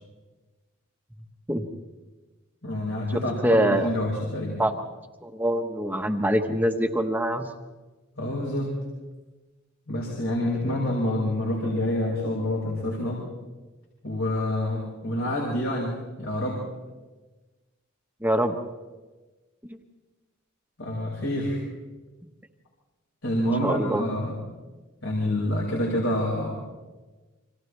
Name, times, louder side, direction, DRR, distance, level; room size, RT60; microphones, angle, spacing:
voice 1, 2.6-4.6 8.2-8.7 9.9-13.2 14.0-16.6 20.8-21.6 23.2-24.4 25.0-26.5, left 1 dB, 70° left, -3 dB, 5.5 m, -27 dB
voice 2, 3.4-3.9 4.6-4.7 5.2-7.5 18.2-18.5 23.6-24.0, right 1 dB, 10° right, 5 dB, 1.1 m, -24 dB
30.0 x 26.0 x 3.4 m, 1.2 s
head